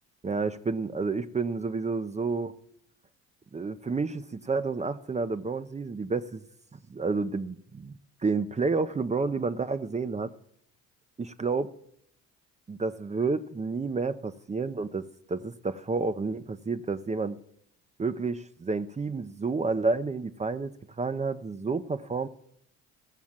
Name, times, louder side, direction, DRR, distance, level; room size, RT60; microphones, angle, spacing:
voice 1, 0.2-2.5 3.5-6.4 6.7-10.3 11.2-11.7 12.7-17.4 18.0-22.3, right 4 dB, 20° right, 0.6 m, -30 dB
15.0 x 6.2 x 7.2 m
supercardioid pair, 65°, 32 cm